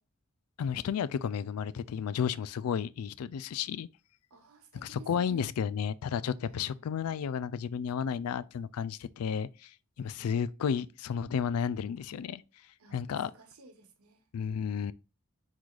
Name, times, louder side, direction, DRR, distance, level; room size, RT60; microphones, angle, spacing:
voice 1, 0.6-3.9 4.8-9.7 10.0-12.4 12.9-13.3 14.3-14.9, left 7 dB, 90° left, 0.3 m, -32 dB
voice 2, 4.3-5.5 6.4-6.8 10.0-10.5 12.8-14.2, right 2 dB, 85° right, 1.1 m, -55 dB
4.7 x 3.8 x 2.4 m
head